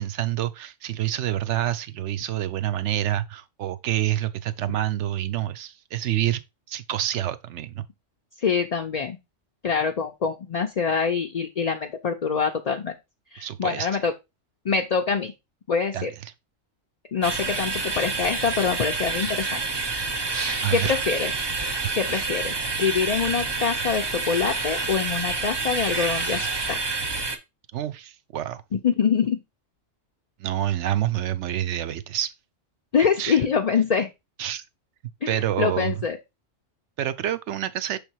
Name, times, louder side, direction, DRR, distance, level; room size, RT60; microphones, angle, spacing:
voice 1, 0.0-6.4 6.7-7.9 13.4-14.0 15.9-16.3 20.6-21.0 27.7-28.6 30.4-32.3 33.2-33.4 34.4-34.6 35.3-36.0 37.0-38.0, right 12 dB, 70° right, 0.8 m, -27 dB
voice 2, 8.4-9.2 9.6-12.9 13.3-14.1 14.6-15.3 15.7-16.1 17.1-19.6 20.7-21.3 21.9-26.9 28.8-29.4 32.9-34.1 35.2-36.2, left 6 dB, 45° left, 0.5 m, -25 dB
sound 1, 17.2-27.4, right 3 dB, 25° right, 0.6 m, -28 dB
6.3 x 3.5 x 4.5 m
omnidirectional pair, 1.3 m